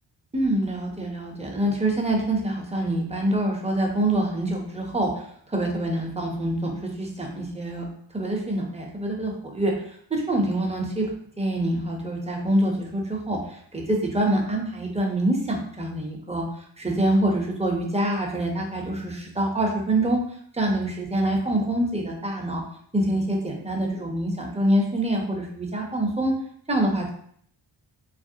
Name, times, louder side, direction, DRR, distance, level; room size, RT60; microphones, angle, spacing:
voice 1, 0.3-5.1 5.5-6.7 7.0-7.8 8.1-9.7 10.1-11.1 11.4-13.4 13.7-16.4 16.8-20.2 20.5-22.6 22.9-26.3 26.7-27.1, right 1 dB, 15° right, 0 dB, 0.6 m, -25 dB
2.4 x 2.1 x 2.7 m, 0.63 s
cardioid pair, 45°, 47 cm